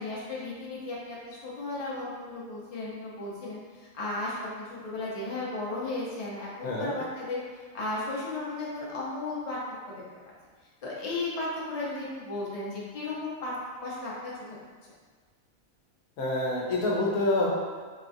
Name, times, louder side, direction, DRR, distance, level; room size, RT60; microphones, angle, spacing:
voice 1, 0.0-7.4 7.7-9.6 9.9-10.0 10.8-13.6 13.8-14.3, left 2 dB, 35° left, -5 dB, 0.6 m, -35 dB
voice 2, 6.6-7.0 16.2-17.5, left 2 dB, 85° left, -3 dB, 1.2 m, -27 dB
4.1 x 3.0 x 2.6 m, 1.5 s
omnidirectional pair, 1.4 m